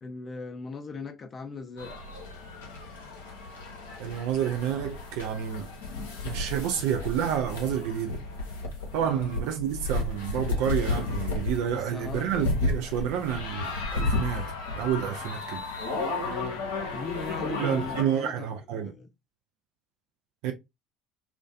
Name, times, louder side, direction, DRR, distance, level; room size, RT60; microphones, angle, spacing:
voice 1, 0.0-1.9 9.0-9.3 11.7-12.3 16.2-16.6 16.9-18.5 18.7-19.1, left 4 dB, 35° left, 0.5 m, -38 dB
sound 1, 1.8-18.0, left 2 dB, 80° left, 0.7 m, -33 dB
voice 2, 4.0-5.7 6.2-8.2 8.9-15.6 17.6-18.9 20.4-20.5, right 9 dB, 65° right, 0.3 m, -29 dB
2.4 x 2.2 x 2.4 m
hypercardioid pair, 60°, 0 cm